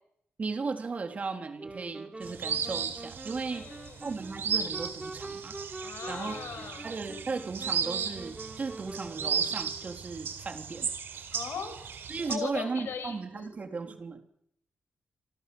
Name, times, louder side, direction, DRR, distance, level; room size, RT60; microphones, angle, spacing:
voice 1, 0.4-3.6 4.0-5.5 5.8-6.4 6.8-11.3 12.1-14.2, right 4 dB, 35° right, 5 dB, 3.4 m, -36 dB
sound 1, 1.6-10.0, right 2 dB, 20° right, 3.3 m, -45 dB
sound 2, 2.2-12.4, right 7 dB, 70° right, 4.2 m, -35 dB
voice 2, 3.5-4.2 5.8-7.0 11.3-11.8 12.3-13.6, left 6 dB, 80° left, 8 dB, 6.1 m, -39 dB
29.5 x 26.5 x 7.0 m, 0.76 s
wide cardioid pair, 130°, 4 cm